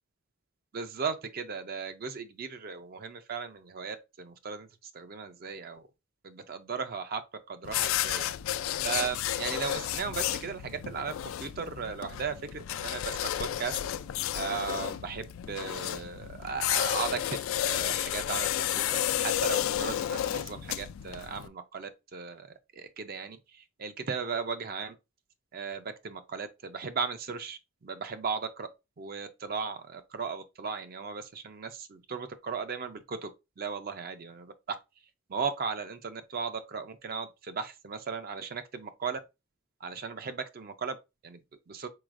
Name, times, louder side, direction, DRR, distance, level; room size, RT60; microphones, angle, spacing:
voice 1, 0.7-5.8 6.2-7.2 7.5-13.8 14.3-17.4 17.6-24.9 25.5-28.7 29.0-33.3 33.6-34.8 35.3-39.2 39.8-41.0 41.2-41.9, right 5 dB, 45° right, 0.4 m, -36 dB
sound 1, 7.6-21.5, left 11 dB, 80° left, 0.3 m, -32 dB
4.7 x 3.9 x 2.5 m
head